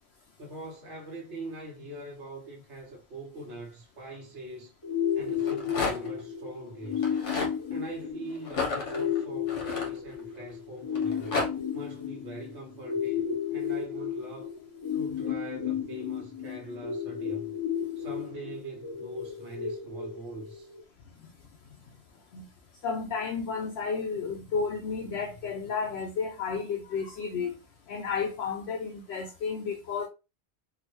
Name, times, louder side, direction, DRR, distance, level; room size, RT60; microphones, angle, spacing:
voice 1, 0.4-4.8 5.1-7.1 7.7-11.4 11.7-14.5 14.9-17.6 18.0-20.7, right 1 dB, 75° right, 1.0 m, -42 dB
sound 1, 4.8-20.8, left 8 dB, 25° left, 0.9 m, -33 dB
Rattle, 5.3-6.2 6.9-7.5 8.4-10.4 10.9-11.5, left 3 dB, 85° left, 1.3 m, -32 dB
voice 2, 22.8-27.5 27.9-30.1, left 5 dB, 65° left, 0.8 m, -32 dB
3.8 x 2.0 x 3.0 m
omnidirectional pair, 1.2 m